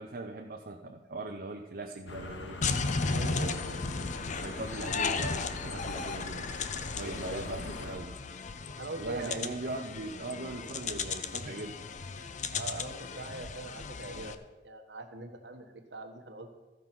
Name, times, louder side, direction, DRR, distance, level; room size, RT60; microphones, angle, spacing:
voice 1, 0.0-2.6 3.0-6.5 7.0-8.1 9.0-11.8, right 2 dB, 50° right, 2 dB, 0.7 m, -40 dB
sound 1, 2.1-8.0, left 2 dB, 90° left, 1.1 m, -43 dB
sound 2, 2.6-14.4, left 4 dB, 40° left, 0.6 m, -35 dB
voice 2, 3.0-3.5 6.9-7.5 7.8-8.0 8.8-9.4 12.5-14.4 14.6-16.5, right 2 dB, 70° right, 3 dB, 1.3 m, -42 dB
14.0 x 5.5 x 6.0 m, 1.2 s
head